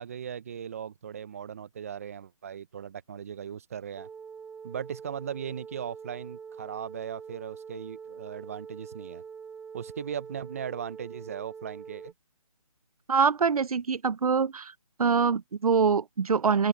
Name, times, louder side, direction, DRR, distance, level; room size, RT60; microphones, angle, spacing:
voice 1, 0.0-4.1 4.6-9.2 9.7-12.1, right 8 dB, 25° right, 0.7 m, -38 dB
sound 1, 4.0-12.1, right 6 dB, 5° right, 1.2 m, -44 dB
voice 2, 13.1-14.7 15.0-16.7, right 5 dB, 75° right, 0.6 m, -24 dB
open air
hypercardioid pair, 165°, 19 cm